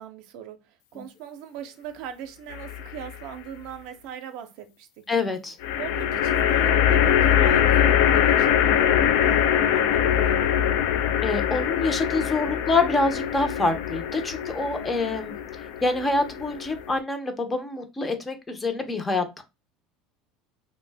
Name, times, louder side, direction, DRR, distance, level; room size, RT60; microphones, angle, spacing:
voice 1, 0.0-5.1 5.8-10.6 14.8-15.2, right 9 dB, 65° right, 0.5 m, -39 dB
sound 1, 2.5-3.1 5.6-17.0, left 9 dB, 75° left, 0.3 m, -23 dB
voice 2, 5.1-5.6 11.2-15.3 15.8-19.4, left 3 dB, 15° left, 0.5 m, -26 dB
2.5 x 2.0 x 3.3 m
supercardioid pair, 140°, 0 cm